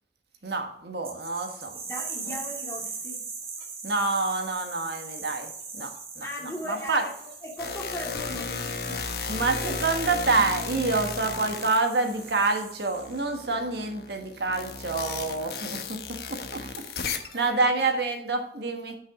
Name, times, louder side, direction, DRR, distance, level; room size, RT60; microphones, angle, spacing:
voice 1, 0.4-1.8 3.8-5.5 5.7-6.3 6.9-7.0 9.3-15.8 16.3-16.6 17.0-18.9, right 3 dB, 70° right, 4 dB, 1.4 m, -27 dB
sound 1, 1.0-13.4, right 4 dB, 35° right, 1.8 m, -41 dB
voice 2, 1.8-3.2 6.2-9.8 13.5-13.6 17.3-17.7, equal, 15° left, -2 dB, 2.4 m, -39 dB
sound 2, 7.6-12.6 12.9-17.4, left 5 dB, 60° left, 0.9 m, -34 dB
9.3 x 5.5 x 4.9 m, 0.66 s
head